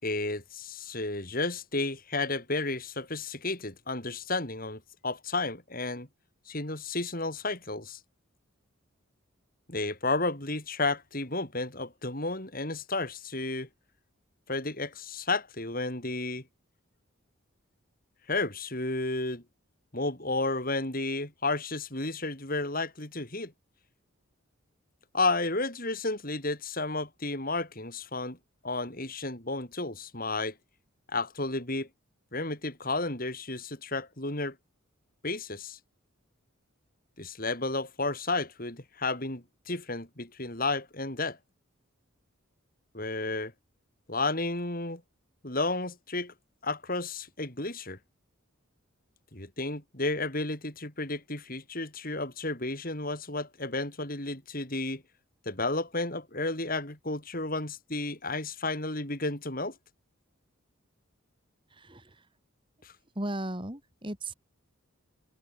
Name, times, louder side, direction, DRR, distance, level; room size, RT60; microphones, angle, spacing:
voice 1, 0.0-6.1 6.5-8.0 9.7-13.7 14.5-16.4 18.3-19.4 19.9-23.5 25.1-28.4 28.6-30.5 31.1-31.9 32.3-34.5 35.2-35.8 37.2-41.4 42.9-43.5 44.1-45.0 45.4-46.3 46.6-48.0 49.3-55.0 55.4-59.7 62.8-62.9, left 2 dB, 40° left, 4.9 m, -32 dB
voice 2, 61.7-62.3 63.1-64.3, right 1 dB, 25° right, 3.2 m, -36 dB
head